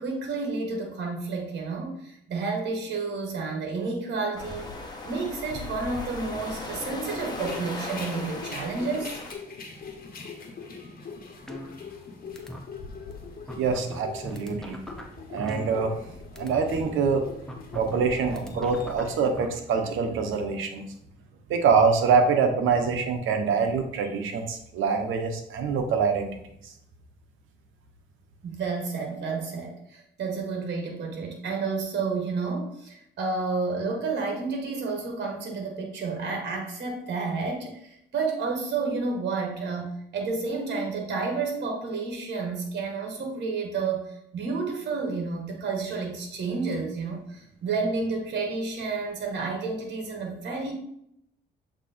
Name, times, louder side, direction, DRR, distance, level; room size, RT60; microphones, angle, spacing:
voice 1, 0.0-4.7 5.0-9.2 28.4-50.7, right 4 dB, 60° right, 1 dB, 1.6 m, -30 dB
sound 1, 4.4-9.3, left 2 dB, 20° left, 1.2 m, -37 dB
sound 2, 7.3-19.3, left 4 dB, 45° left, 1.3 m, -42 dB
sound 3, 11.5-12.1 12.4-12.6 13.1-13.2 13.5-16.1 16.4-16.6 17.5-19.5, equal, 5° left, 0.9 m, -39 dB
voice 2, 13.6-14.8 15.3-15.9 16.4-17.3 17.7-20.9 21.5-26.3, right 5 dB, 85° right, 6 dB, 1.0 m, -25 dB
7.4 x 3.1 x 4.3 m, 0.75 s
cardioid pair, 90°, 20 cm